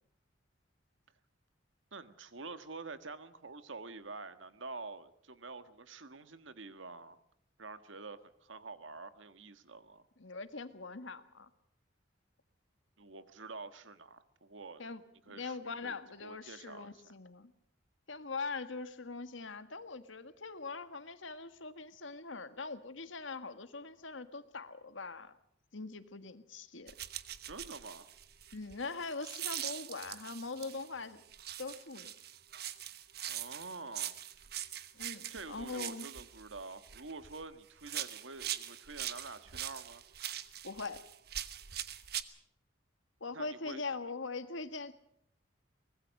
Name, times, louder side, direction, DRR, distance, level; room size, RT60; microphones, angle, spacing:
voice 1, 1.9-7.2 7.6-10.1 13.0-14.8 15.3-17.2 27.5-28.1 33.3-34.2 35.3-40.0 43.3-43.8, right 3 dB, 80° right, 11 dB, 1.5 m, -47 dB
voice 2, 10.2-11.5 14.8-15.0 15.3-17.5 18.1-25.3 25.7-26.9 28.5-31.2 31.6-32.1 34.9-36.1 40.6-41.0 43.2-44.9, left 3 dB, 80° left, 11 dB, 1.6 m, -42 dB
sound 1, 26.9-30.9 31.3-37.4 37.8-42.2, right 11 dB, 55° right, 1.2 m, -42 dB
24.0 x 20.0 x 6.5 m, 0.70 s
head